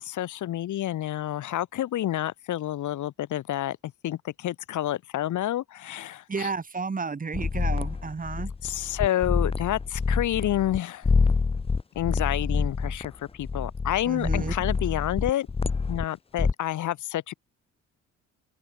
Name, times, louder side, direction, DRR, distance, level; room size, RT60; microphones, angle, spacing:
voice 1, 0.0-6.5 8.6-11.1 12.0-15.5 15.9-17.3, left 13 dB, 75° left, 3.9 m, -29 dB
voice 2, 6.3-8.5 14.1-14.5, right 4 dB, 30° right, 2.2 m, -32 dB
sound 1, 7.3-10.8 11.0-16.0 16.4-16.5, left 4 dB, 20° left, 0.7 m, -27 dB
open air
cardioid pair, 90°, 30 cm